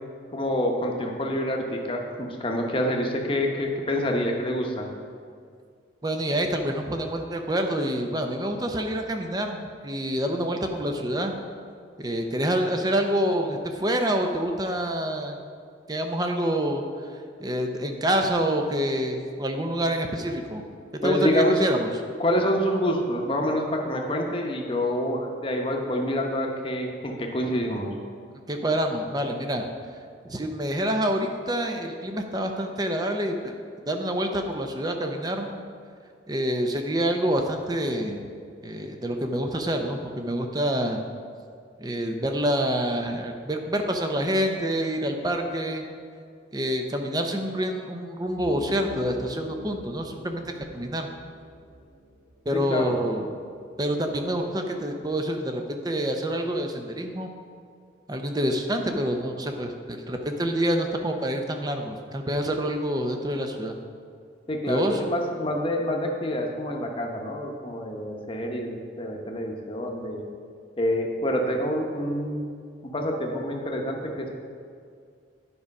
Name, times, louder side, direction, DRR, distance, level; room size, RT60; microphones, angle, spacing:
voice 1, 0.3-4.9 21.0-21.6 22.2-27.9 52.5-53.0 64.5-70.2 70.8-72.4 72.8-74.4, equal, 30° left, 1 dB, 0.9 m, -27 dB
voice 2, 6.0-9.6 9.8-11.3 12.0-15.4 15.9-16.8 17.4-20.6 21.0-21.9 28.5-29.7 30.2-33.6 33.9-35.6 36.3-38.3 38.6-41.0 41.8-45.8 46.5-51.1 52.5-53.3 53.8-57.3 58.1-63.7 64.7-65.0, equal, 20° right, 4 dB, 0.6 m, -27 dB
sound 1, 48.3-53.1, equal, 40° right, 2.0 m, -43 dB
9.8 x 5.0 x 5.3 m, 2.2 s
head